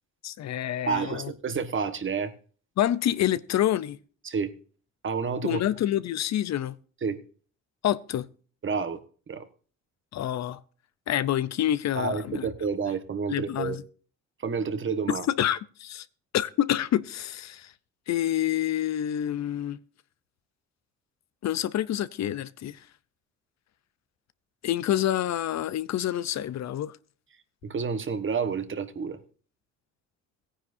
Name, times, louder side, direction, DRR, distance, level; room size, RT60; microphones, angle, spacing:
voice 1, 0.2-1.3 2.8-4.0 5.4-6.7 7.8-8.3 10.1-10.6 11.1-12.5 13.3-13.8 15.1-16.1 16.3-17.7 18.1-19.8 21.4-22.8 24.6-27.0, left 12 dB, 60° left, 0.6 m, -27 dB
voice 2, 0.9-2.3 4.2-4.5 5.0-5.6 7.0-7.2 8.6-9.0 9.3-9.5 11.9-13.8 14.4-15.3 27.6-29.2, right 5 dB, 40° right, 1.3 m, -29 dB
17.0 x 9.9 x 2.7 m
cardioid pair, 90°, 30 cm